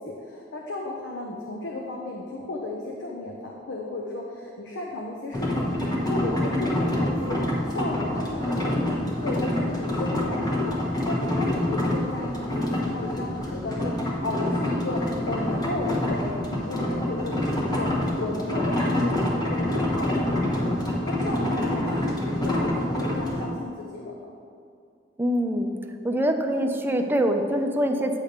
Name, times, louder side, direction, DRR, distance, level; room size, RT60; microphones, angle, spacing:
voice 1, 0.0-24.3, left 2 dB, 75° left, -1 dB, 0.7 m, -34 dB
sound 1, 5.3-23.5, left 1 dB, 20° left, 1.1 m, -26 dB
voice 2, 25.2-25.7 26.0-28.2, equal, 10° right, 4 dB, 0.5 m, -24 dB
8.9 x 3.4 x 6.6 m, 2.4 s
head